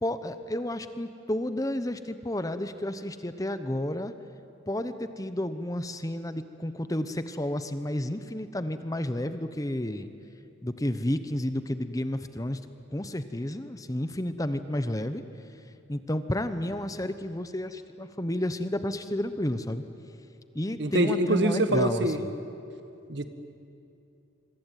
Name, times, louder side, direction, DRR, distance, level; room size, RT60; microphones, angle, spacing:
voice 1, 0.0-4.1 4.7-10.1 10.6-12.6 12.9-15.2 15.9-19.8 20.5-22.3, left 1 dB, 15° left, 11 dB, 0.9 m, -31 dB
voice 2, 20.8-22.2 23.1-23.3, right 1 dB, 60° right, 9 dB, 1.7 m, -25 dB
26.0 x 24.0 x 9.2 m, 2.7 s
head